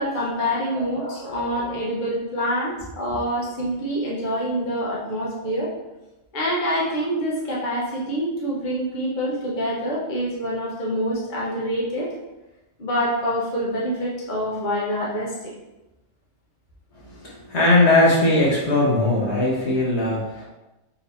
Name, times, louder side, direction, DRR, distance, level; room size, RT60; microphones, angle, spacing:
voice 1, 0.0-5.7 6.3-12.1 12.8-15.5, equal, 40° left, -5 dB, 1.1 m, -26 dB
voice 2, 0.8-1.7 16.9-20.4, left 2 dB, 65° left, -4 dB, 1.3 m, -20 dB
4.2 x 3.0 x 4.0 m, 1.0 s
omnidirectional pair, 1.3 m